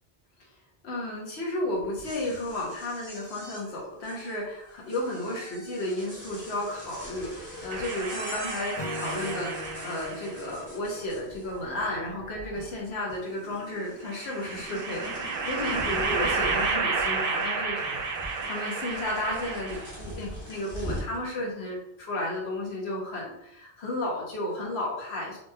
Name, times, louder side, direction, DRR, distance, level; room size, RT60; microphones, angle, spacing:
voice 1, 0.8-17.8 18.2-25.4, left 1 dB, 85° left, -2 dB, 1.1 m, -33 dB
sound 1, 1.8-11.8 12.1-12.8 13.1-21.2, equal, 20° left, 1.0 m, -42 dB
sound 2, 7.7-10.4 11.5-12.5 14.1-20.1, right 4 dB, 65° right, 0.7 m, -31 dB
Acoustic guitar / Strum, 8.8-12.1, left 2 dB, 60° left, 1.0 m, -41 dB
3.0 x 2.8 x 2.2 m, 0.77 s
omnidirectional pair, 1.1 m